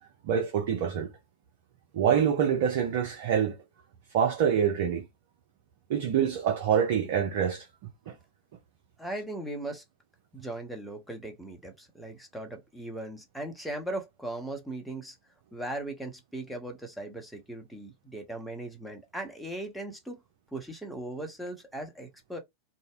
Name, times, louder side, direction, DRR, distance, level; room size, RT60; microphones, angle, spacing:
voice 1, 0.2-1.1 1.9-3.6 4.1-5.0 5.9-7.7, right 8 dB, 50° right, 0.5 m, -25 dB
voice 2, 9.0-9.8 10.3-15.2 15.5-20.2 20.5-22.4, right 1 dB, ahead, 0.8 m, -38 dB
2.6 x 2.0 x 2.3 m
figure-of-eight pair, 90°, 0 cm